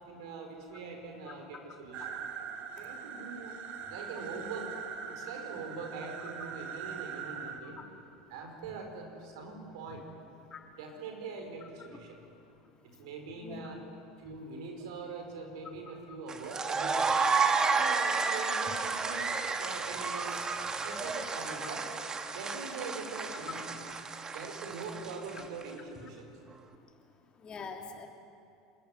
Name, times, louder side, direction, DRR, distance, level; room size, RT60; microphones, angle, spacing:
voice 1, 0.1-2.1 2.7-3.6 3.9-4.8 5.0-7.8 8.3-10.1 10.7-12.2 12.8-13.8 14.2-17.2 17.7-19.3 19.6-20.5 20.8-21.9 22.3-23.7 24.3-26.3, right 4 dB, 70° right, 3 dB, 5.0 m, -43 dB
sound 1, 1.9-7.6, right 7 dB, 50° right, 2.1 m, -42 dB
sound 2, 16.3-25.6, right 4 dB, 25° right, 1.6 m, -32 dB
voice 2, 27.4-28.1, left 5 dB, 30° left, 2 dB, 3.1 m, -43 dB
27.0 x 14.0 x 9.8 m, 2.5 s
hypercardioid pair, 80°, 3 cm